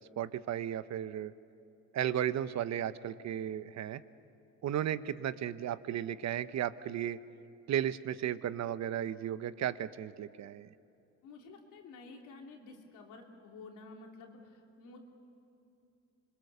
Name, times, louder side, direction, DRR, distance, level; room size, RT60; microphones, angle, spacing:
voice 1, 0.0-1.3 1.9-4.0 4.6-7.2 7.7-10.7, right 10 dB, 65° right, 14 dB, 0.9 m, -34 dB
voice 2, 11.2-15.0, left 3 dB, 90° left, 1 dB, 3.2 m, -51 dB
26.0 x 22.0 x 6.8 m, 2.8 s
cardioid pair, 90°, 30 cm